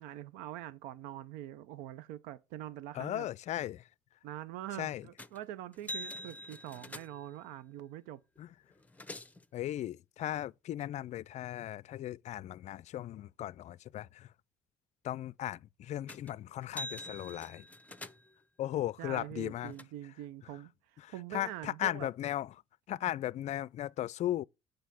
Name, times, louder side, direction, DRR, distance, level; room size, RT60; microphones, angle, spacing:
voice 1, 0.0-3.3 4.2-8.2 19.0-22.1, right 13 dB, 85° right, 0.7 m, -44 dB
voice 2, 2.9-3.8 4.8-5.0 8.4-8.5 9.5-14.3 15.0-17.6 18.6-19.7 21.0-22.5 22.9-24.4, left 13 dB, 55° left, 0.4 m, -37 dB
sound 1, 5.2-5.4 5.7-7.4 8.4-8.5 8.7-9.5 16.1-16.3 16.6-18.4 19.2-19.8, left 1 dB, 10° left, 1.1 m, -45 dB
8.3 x 4.9 x 7.6 m
supercardioid pair, 70°, 14 cm